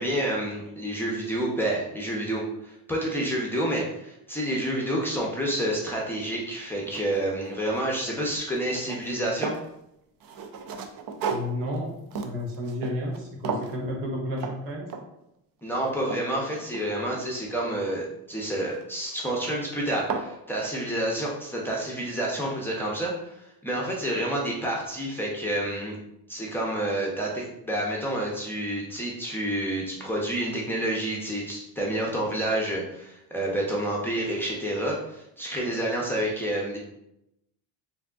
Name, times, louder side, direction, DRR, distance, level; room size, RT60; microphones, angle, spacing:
voice 1, 0.0-9.6 15.6-26.0 26.3-36.8, right 1 dB, 5° left, -4 dB, 0.6 m, -29 dB
sound 1, 6.0-6.1 6.6-8.0 8.3-9.7 10.2-13.2 13.4-13.8 14.4-14.6 14.9-15.3 15.7-17.3 18.7-19.1 19.6-19.7 19.9-20.3, right 5 dB, 50° right, 0.5 m, -35 dB
voice 2, 11.3-14.9, left 1 dB, 75° right, 0 dB, 1.0 m, -32 dB
3.5 x 2.6 x 2.3 m, 0.82 s
cardioid pair, 105°, 44 cm